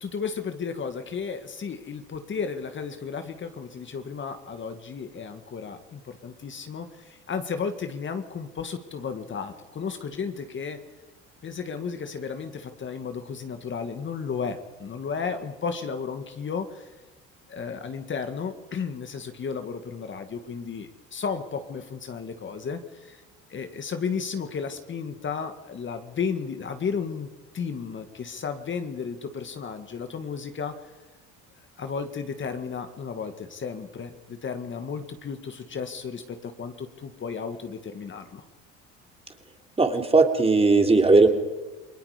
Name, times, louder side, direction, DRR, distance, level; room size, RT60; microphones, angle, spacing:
voice 1, 0.0-10.8 11.4-16.9 17.5-23.2 23.5-30.7 31.8-38.4, left 6 dB, 35° left, 7 dB, 1.9 m, -33 dB
voice 2, 39.8-41.3, right 3 dB, 15° right, 4 dB, 3.0 m, -18 dB
28.5 x 20.0 x 5.1 m, 1.2 s
supercardioid pair, 95°, 33 cm